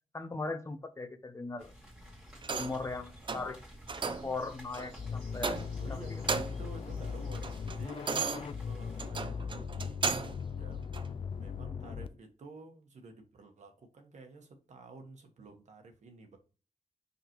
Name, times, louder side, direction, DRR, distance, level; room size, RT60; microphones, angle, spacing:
voice 1, 0.1-1.7 2.5-3.6 4.0-5.6 5.9-6.0, left 3 dB, 25° left, 0.8 m, -38 dB
sound 1, 1.6-9.1, equal, 5° right, 2.1 m, -52 dB
sound 2, 2.4-2.9 3.3-3.5 3.9-4.3 4.7-4.9 5.4-5.9 6.1-6.7 7.1-10.4 10.9-11.1, right 5 dB, 40° right, 0.6 m, -35 dB
sound 3, 5.0-12.1, left 6 dB, 45° left, 0.4 m, -39 dB
voice 2, 5.8-8.0 8.6-10.9 11.4-16.4, right 3 dB, 70° right, 1.3 m, -51 dB
5.9 x 5.3 x 3.0 m
wide cardioid pair, 165°, 13 cm